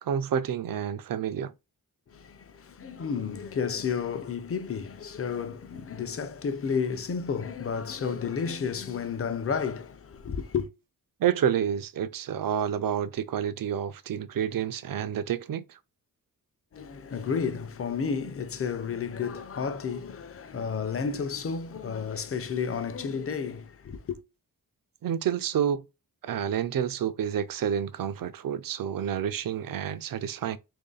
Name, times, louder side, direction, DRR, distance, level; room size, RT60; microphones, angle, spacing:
voice 1, 0.0-1.5 11.2-15.8 25.0-25.8 26.2-30.6, right 9 dB, 65° right, 0.5 m, -29 dB
voice 2, 2.1-10.7 16.7-24.2, left 6 dB, 40° left, 0.5 m, -32 dB
3.0 x 2.6 x 3.9 m
wide cardioid pair, 105°, 36 cm